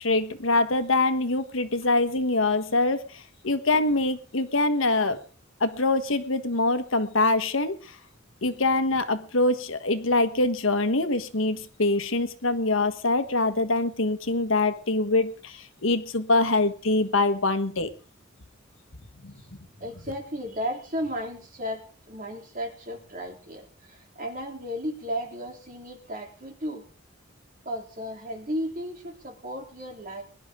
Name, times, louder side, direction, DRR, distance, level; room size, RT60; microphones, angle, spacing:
voice 1, 0.0-5.2 5.6-7.7 8.4-17.9 19.2-19.3, left 2 dB, 80° left, 9 dB, 1.5 m, -24 dB
voice 2, 19.8-26.9 27.7-30.2, equal, 40° right, 2 dB, 3.5 m, -34 dB
22.0 x 11.5 x 3.8 m, 0.39 s
head